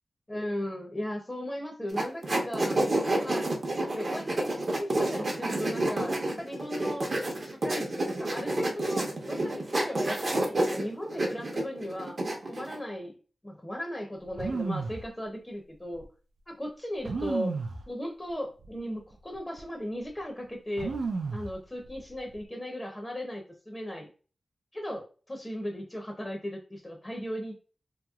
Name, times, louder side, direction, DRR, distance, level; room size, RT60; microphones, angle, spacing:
voice 1, 0.3-2.8 3.2-3.5 3.8-7.1 7.4-12.2 12.5-13.2 13.4-16.0 16.5-17.5 17.9-20.9 21.3-24.1 24.7-27.6, equal, 20° left, 1 dB, 0.6 m, -37 dB
sound 1, 1.9-12.8, right 1 dB, 55° right, 0.7 m, -29 dB
sound 2, 14.3-15.1 15.9-16.0 17.0-17.8 18.6-18.8 19.1-19.6 20.8-21.5 21.8-22.4, right 4 dB, 85° right, 0.3 m, -32 dB
2.9 x 2.8 x 2.3 m, 0.37 s
wide cardioid pair, 85°, 0 cm